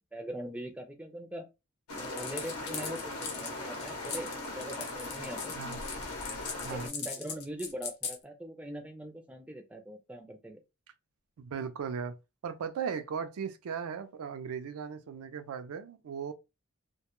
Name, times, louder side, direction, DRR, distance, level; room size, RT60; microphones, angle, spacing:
voice 1, 0.1-1.5 1.9-5.5 6.6-10.6, right 1 dB, 5° right, 0.3 m, -42 dB
sound 1, 1.9-6.9, left 2 dB, 85° left, 0.7 m, -39 dB
sound 2, 2.0-8.2, left 6 dB, 50° left, 0.6 m, -39 dB
voice 2, 11.4-12.2 12.4-16.3, right 6 dB, 80° right, 0.4 m, -37 dB
2.1 x 2.1 x 2.9 m
head